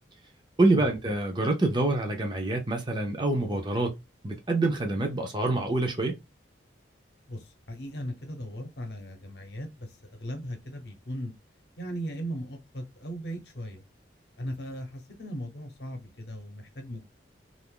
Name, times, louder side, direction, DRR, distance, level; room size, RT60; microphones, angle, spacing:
voice 1, 0.6-3.9 4.2-6.1, right 2 dB, 25° right, 0.6 m, -26 dB
voice 2, 7.3-11.3 11.8-13.8 14.4-17.1, equal, 60° left, 0.8 m, -38 dB
2.5 x 2.5 x 3.7 m
head